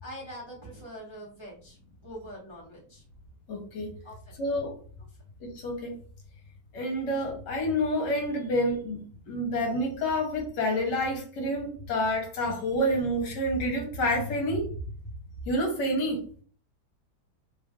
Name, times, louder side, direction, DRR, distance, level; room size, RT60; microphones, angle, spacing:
voice 1, 0.0-3.0 4.0-4.3 5.1-5.2, equal, 20° right, -5 dB, 0.8 m, -44 dB
voice 2, 3.5-3.9 4.4-4.7 5.4-5.9 6.7-14.7 15.5-16.2, equal, 70° left, 1 dB, 1.5 m, -28 dB
3.2 x 2.5 x 3.5 m, 0.42 s
omnidirectional pair, 2.0 m